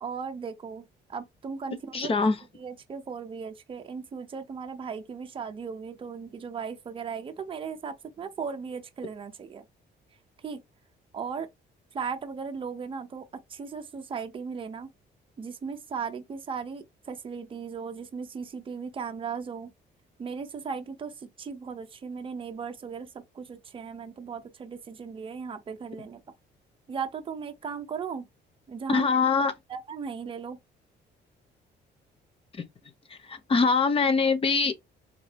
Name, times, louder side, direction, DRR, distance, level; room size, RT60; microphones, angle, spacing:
voice 1, 0.0-2.1 2.5-9.6 10.4-10.6 11.1-11.5 11.9-14.9 15.4-19.7 20.2-26.2 26.9-28.3 28.7-29.2 29.7-30.6, right 6 dB, 30° right, 0.6 m, -37 dB
voice 2, 1.9-2.4 28.9-29.5 33.3-34.7, left 4 dB, 30° left, 0.7 m, -23 dB
3.6 x 2.7 x 3.3 m
cardioid pair, 140°, 19 cm